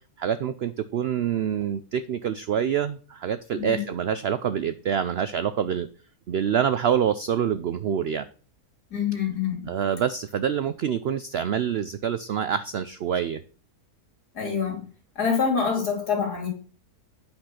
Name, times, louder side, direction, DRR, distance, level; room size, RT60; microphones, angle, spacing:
voice 1, 0.2-5.9 6.3-8.3 9.6-13.4, right 8 dB, 90° right, 13 dB, 0.5 m, -26 dB
voice 2, 8.9-9.7 14.3-14.8 15.2-16.5, left 6 dB, 85° left, 1 dB, 3.1 m, -26 dB
8.7 x 5.2 x 5.8 m, 0.40 s
omnidirectional pair, 1.6 m